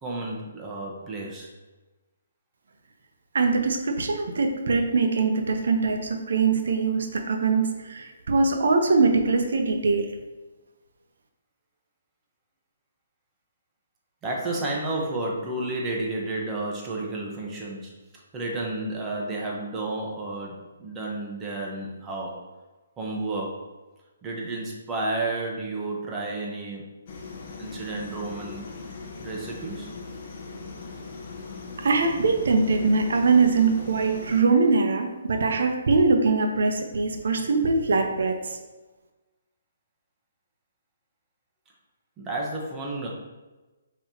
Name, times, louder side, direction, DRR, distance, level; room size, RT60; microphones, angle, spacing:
voice 1, 0.0-1.5 14.2-17.9 18.3-22.5 23.0-23.6 24.2-26.9 27.6-28.6 29.2-29.9 42.2-43.1, right 2 dB, 15° right, -2 dB, 0.9 m, -31 dB
voice 2, 3.3-10.1 31.8-38.6, right 4 dB, 70° right, 4 dB, 0.7 m, -22 dB
sound 1, 27.1-34.4, left 4 dB, 45° left, 0.8 m, -40 dB
5.6 x 3.0 x 2.8 m, 1.2 s
hypercardioid pair, 155°, 0 cm